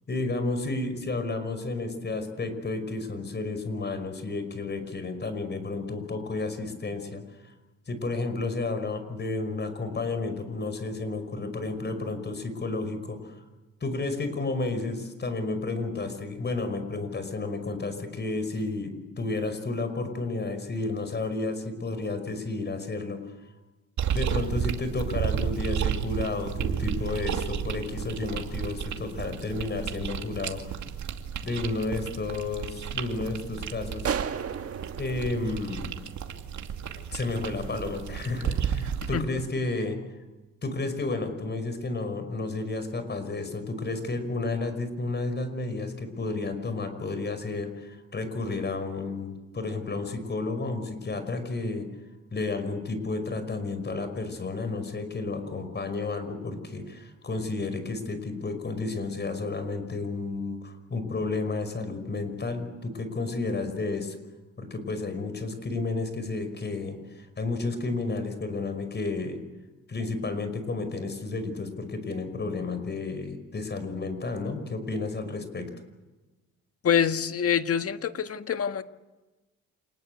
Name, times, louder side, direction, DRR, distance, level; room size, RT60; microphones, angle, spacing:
voice 1, 0.1-7.5 7.9-13.4 13.8-23.4 24.1-30.7 31.4-34.1 35.0-36.0 37.1-40.0 40.6-51.9 52.3-64.2 64.6-69.4 69.9-75.7, left 3 dB, 35° left, 9 dB, 5.5 m, -32 dB
sound 1, 24.0-39.2, right 8 dB, 70° right, 2.6 m, -32 dB
sound 2, 34.0-36.6, right 7 dB, 50° right, 1.8 m, -34 dB
voice 2, 76.8-78.8, left 8 dB, 50° left, 9 dB, 1.6 m, -26 dB
28.0 x 20.0 x 8.2 m, 1.1 s
cardioid pair, 90°, 30 cm